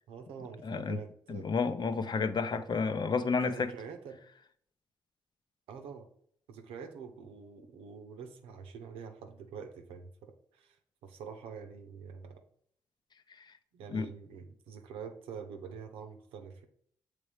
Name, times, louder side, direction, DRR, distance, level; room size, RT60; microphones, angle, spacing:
voice 1, 0.1-1.5 2.5-2.7 3.4-4.2 5.7-6.1 6.5-10.8 11.0-12.4 13.7-16.6, right 6 dB, 85° right, 0.8 m, -46 dB
voice 2, 0.6-1.0 1.3-3.7 13.4-13.5 13.9-14.1, left 5 dB, 50° left, 0.7 m, -31 dB
6.9 x 3.3 x 4.9 m
supercardioid pair, 45°, 9 cm